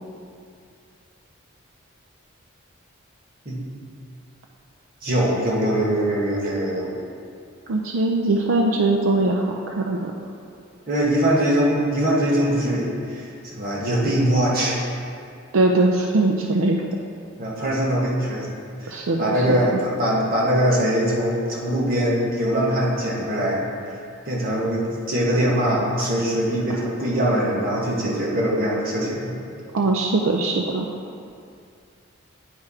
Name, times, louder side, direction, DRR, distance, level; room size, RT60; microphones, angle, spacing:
voice 1, 5.0-6.9 10.9-14.8 17.4-18.5 18.8-18.9 19.2-23.6 24.2-29.3, right 1 dB, 45° right, -3 dB, 1.2 m, -22 dB
voice 2, 7.7-10.1 15.5-16.8 18.9-19.8 29.7-30.9, right 2 dB, 80° right, 1 dB, 0.4 m, -21 dB
9.6 x 3.2 x 4.8 m, 2.4 s
head